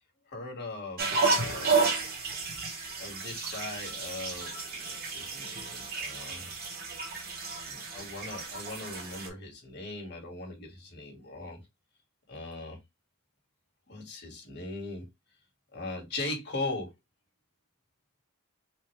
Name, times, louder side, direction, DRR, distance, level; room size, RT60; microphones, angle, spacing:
voice 1, 0.3-1.7 3.0-6.5 7.6-11.6 12.3-12.8 13.9-15.0 15.7-16.9, left 2 dB, 50° left, 2.1 m, -39 dB
sound 1, 1.0-9.3, right 4 dB, 45° right, 1.6 m, -32 dB
4.3 x 2.7 x 3.1 m
head